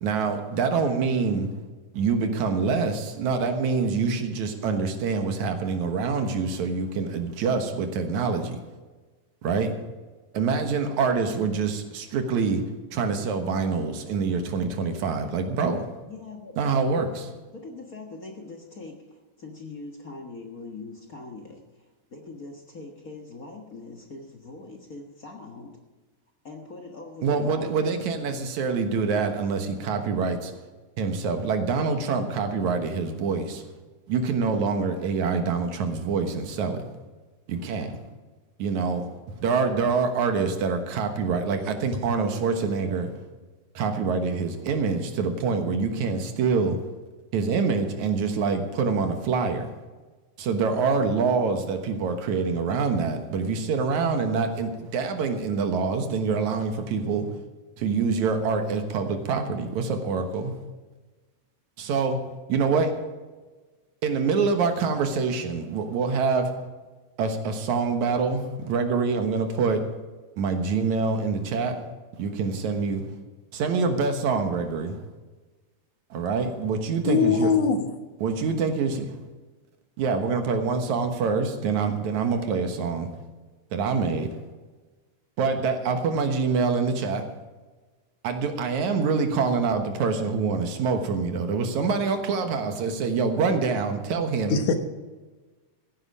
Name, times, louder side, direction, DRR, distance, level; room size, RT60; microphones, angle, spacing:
voice 1, 0.0-1.5 1.9-8.6 9.4-9.7 10.3-15.9 16.6-17.3 27.2-30.5 31.0-33.7 34.1-36.9 37.5-38.0 38.6-43.1 43.7-46.8 47.3-49.7 50.4-57.3 57.8-60.6 61.8-62.2 62.5-63.0 64.0-66.5 67.2-69.8 70.4-71.8 72.2-73.0 73.5-75.0 76.1-77.5 78.2-78.9 80.0-83.1 83.7-84.4 85.4-87.3 88.2-94.6, right 4 dB, 75° right, 6 dB, 2.6 m, -25 dB
voice 2, 16.1-16.7 17.5-25.8 26.4-27.8, left 3 dB, 40° left, 1 dB, 1.3 m, -42 dB
voice 3, 77.1-77.9 94.5-94.8, left 6 dB, 80° left, 7 dB, 2.7 m, -21 dB
16.0 x 9.8 x 4.8 m, 1.3 s
omnidirectional pair, 3.5 m